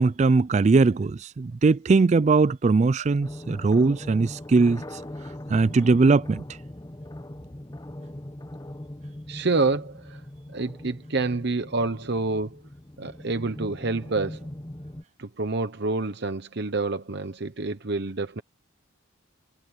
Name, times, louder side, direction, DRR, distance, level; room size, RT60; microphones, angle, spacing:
voice 1, 0.0-4.8 5.5-6.4, right 3 dB, 35° right, 0.3 m, -20 dB
sound 1, 3.2-15.0, left 1 dB, 20° left, 0.9 m, -40 dB
voice 2, 9.3-10.2 10.5-12.6 13.0-14.4 15.2-18.4, right 3 dB, 55° right, 0.9 m, -28 dB
head